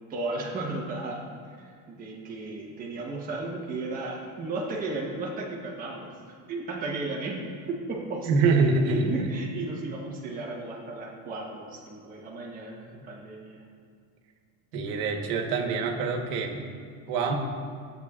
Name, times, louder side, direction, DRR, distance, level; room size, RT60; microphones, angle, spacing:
voice 1, 0.1-6.1 6.5-8.3 8.8-13.6, right 2 dB, 20° right, -3 dB, 1.1 m, -34 dB
voice 2, 8.2-9.1 14.7-16.6 17.1-17.3, right 4 dB, 80° right, 2 dB, 1.3 m, -25 dB
14.0 x 7.9 x 2.4 m, 2.3 s
cardioid pair, 175°, 42 cm